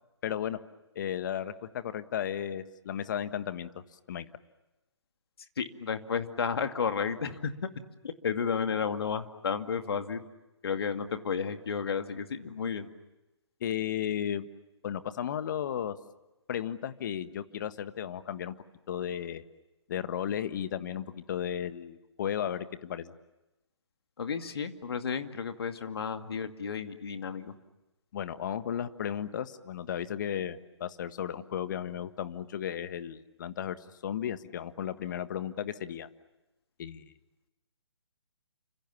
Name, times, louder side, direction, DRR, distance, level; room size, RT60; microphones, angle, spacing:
voice 1, 0.2-0.6 0.9-3.7 4.1-4.2 13.6-14.5 14.8-15.9 16.5-18.6 18.9-19.4 19.9-23.1 28.1-33.8 34.0-36.1 36.8-37.0, left 9 dB, 40° left, 11 dB, 1.6 m, -34 dB
voice 2, 5.6-7.5 8.0-10.2 10.6-12.9 24.2-27.5, left 6 dB, 55° left, 7 dB, 2.4 m, -32 dB
29.5 x 26.5 x 7.2 m, 1.0 s
figure-of-eight pair, 140°, 15 cm